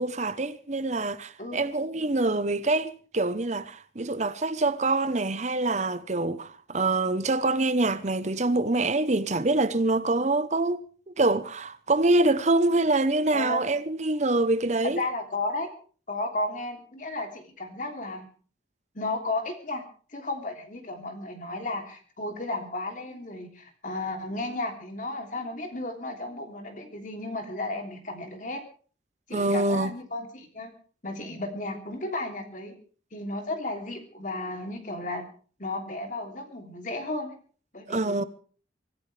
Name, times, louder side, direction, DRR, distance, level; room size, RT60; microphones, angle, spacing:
voice 1, 0.0-10.8 11.1-15.0 29.3-29.9 37.9-38.2, right 2 dB, 40° right, 0.9 m, -25 dB
voice 2, 13.3-13.7 14.8-15.7 16.1-18.3 18.9-19.8 20.1-28.6 29.3-30.7 31.0-32.8 33.1-35.2 35.6-37.3 37.7-38.3, left 2 dB, 45° left, 3.1 m, -34 dB
25.0 x 14.5 x 3.4 m
head